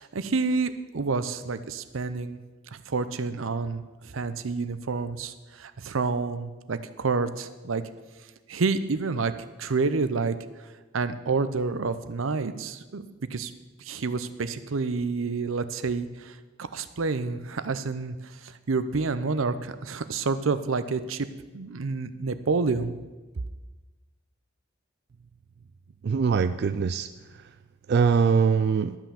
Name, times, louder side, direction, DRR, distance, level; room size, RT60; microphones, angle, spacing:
voice 1, 0.0-2.4 2.7-7.8 8.5-9.3 9.6-10.3 10.9-13.0 13.3-13.5 13.8-21.3 21.5-23.0, right 4 dB, 90° right, 12 dB, 0.7 m, -29 dB
voice 2, 26.0-27.1 27.9-29.0, right 5 dB, 55° right, 11 dB, 0.3 m, -22 dB
12.0 x 5.9 x 7.0 m, 1.2 s
head